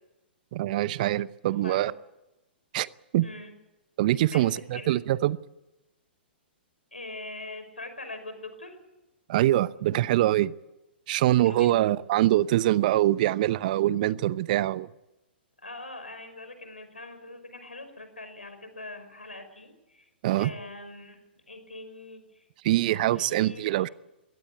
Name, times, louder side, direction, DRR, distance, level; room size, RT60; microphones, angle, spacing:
voice 1, 0.5-1.9 2.7-2.9 3.1-3.3 4.0-5.4 9.3-10.5 11.1-14.9 20.2-20.5 22.6-23.9, right 14 dB, 50° right, 19 dB, 0.8 m, -24 dB
voice 2, 3.2-3.5 4.3-5.0 6.9-8.8 11.4-11.9 15.6-20.1 20.4-21.2 21.5-22.5 22.9-23.9, left 2 dB, 90° left, 8 dB, 5.4 m, -42 dB
22.5 x 17.0 x 8.6 m, 0.99 s
figure-of-eight pair, 115°, 6 cm